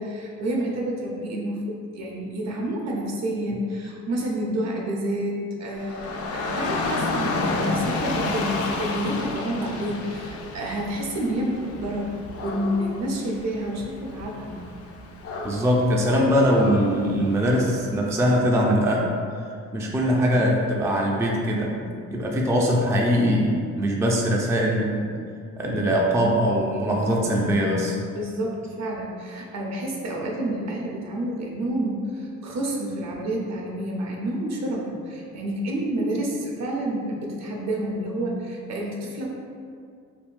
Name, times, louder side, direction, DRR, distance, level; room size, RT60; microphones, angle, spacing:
voice 1, 0.0-14.5 28.1-39.4, right 1 dB, 60° right, -1 dB, 0.7 m, -29 dB
Dog / Rain, 5.8-17.9, left 2 dB, 50° left, 0.5 m, -31 dB
voice 2, 15.4-19.1 19.7-21.7 22.1-25.0 25.6-28.0, equal, 10° right, -1 dB, 0.3 m, -22 dB
3.6 x 2.7 x 2.5 m, 2.3 s
cardioid pair, 90°, 30 cm